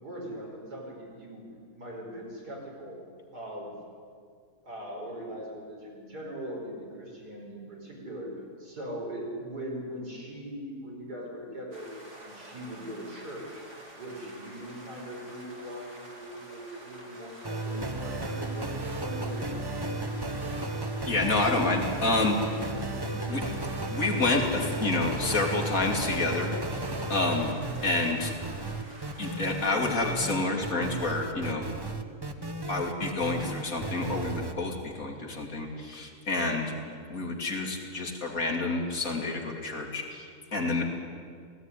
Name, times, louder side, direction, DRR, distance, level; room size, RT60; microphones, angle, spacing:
voice 1, 0.0-1.4 1.7-3.0 3.3-3.8 4.6-8.3 8.6-11.9 12.2-13.6 13.9-20.0, equal, 80° right, -2 dB, 5.4 m, -40 dB
sound 1, 11.7-29.7, right 1 dB, 45° right, 3.4 m, -49 dB
sound 2, 17.4-34.5, right 2 dB, 20° right, 0.7 m, -34 dB
voice 2, 21.1-22.4 23.1-23.6 23.9-26.5 27.1-28.3 29.2-31.7 32.7-36.7 37.1-40.8, left 2 dB, 60° left, 1 dB, 3.0 m, -29 dB
18.5 x 15.5 x 9.9 m, 2.1 s
omnidirectional pair, 1.7 m